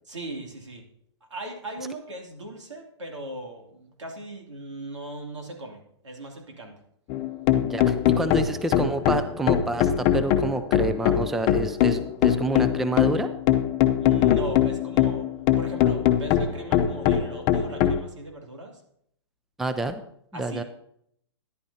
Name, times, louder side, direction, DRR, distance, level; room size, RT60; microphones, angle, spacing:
voice 1, 0.1-0.8 1.3-6.8 14.0-15.3 15.6-18.8 20.3-20.6, right 1 dB, 90° right, 1 dB, 2.8 m, -38 dB
sound 1, 7.1-18.0, left 10 dB, 30° left, 0.7 m, -22 dB
voice 2, 7.5-13.3 19.6-20.0 20.3-20.6, right 2 dB, ahead, 10 dB, 0.3 m, -28 dB
13.0 x 10.5 x 2.8 m, 0.70 s
hypercardioid pair, 140°, 15 cm